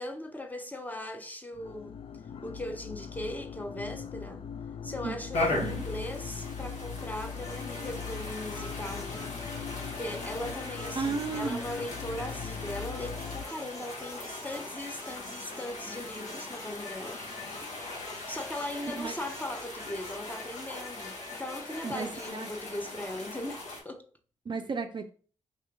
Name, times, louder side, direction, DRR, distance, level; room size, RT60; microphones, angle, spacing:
voice 1, 0.0-1.9 2.4-4.4 4.8-9.2 9.9-17.2 18.3-24.1, left 1 dB, 15° left, 0.8 m, -39 dB
sound 1, 1.5-13.4, left 6 dB, 50° left, 0.3 m, -40 dB
sound 2, 5.3-23.8, left 2 dB, 70° left, 1.2 m, -39 dB
voice 2, 5.5-5.8 10.9-11.6 18.9-19.2 21.8-22.5 24.5-25.1, right 4 dB, 40° right, 0.4 m, -34 dB
sound 3, 7.4-22.3, left 1 dB, 30° left, 1.1 m, -49 dB
3.4 x 2.8 x 3.6 m
supercardioid pair, 45°, 12 cm